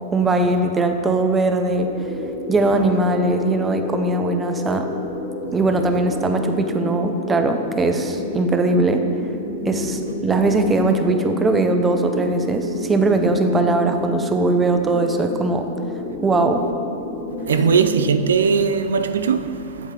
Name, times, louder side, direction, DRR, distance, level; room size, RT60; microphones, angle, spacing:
voice 1, 0.1-1.9 2.5-4.9 5.5-9.1 9.6-15.7 16.2-16.7, right 2 dB, 15° right, 0.5 m, -20 dB
sound 1, 1.7-18.1, left 2 dB, 40° left, 1.0 m, -30 dB
voice 2, 17.5-19.9, right 6 dB, 90° right, 0.3 m, -19 dB
8.0 x 7.3 x 2.9 m
hypercardioid pair, 125°, 0 cm